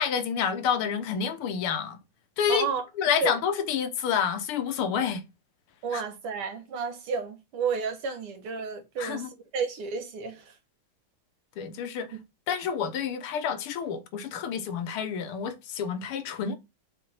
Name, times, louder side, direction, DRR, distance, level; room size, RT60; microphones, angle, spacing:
voice 1, 0.0-2.0 2.4-2.7 3.0-5.2 5.9-6.0 9.0-9.3 11.6-12.1 12.5-16.6, left 7 dB, 80° left, 1.8 m, -28 dB
voice 2, 2.5-2.8 3.2-3.4 5.8-10.6, right 5 dB, 85° right, 2.2 m, -31 dB
6.3 x 3.3 x 5.6 m
omnidirectional pair, 2.4 m